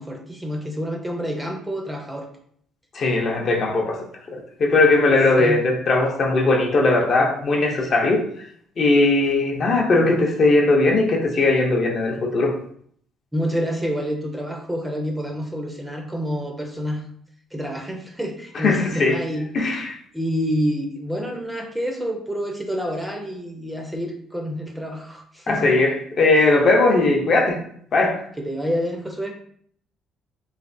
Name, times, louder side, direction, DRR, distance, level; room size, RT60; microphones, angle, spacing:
voice 1, 0.0-2.3 5.4-5.6 13.3-17.0 17.5-19.5 20.1-25.7 26.4-26.5 28.4-29.3, equal, 5° right, 2 dB, 0.5 m, -28 dB
voice 2, 2.9-4.0 4.3-8.2 8.8-12.6 18.5-19.2 19.5-19.9 25.5-27.6 27.9-28.2, left 2 dB, 45° left, 1 dB, 0.6 m, -19 dB
3.2 x 3.1 x 2.6 m, 0.63 s
cardioid pair, 125°, 0 cm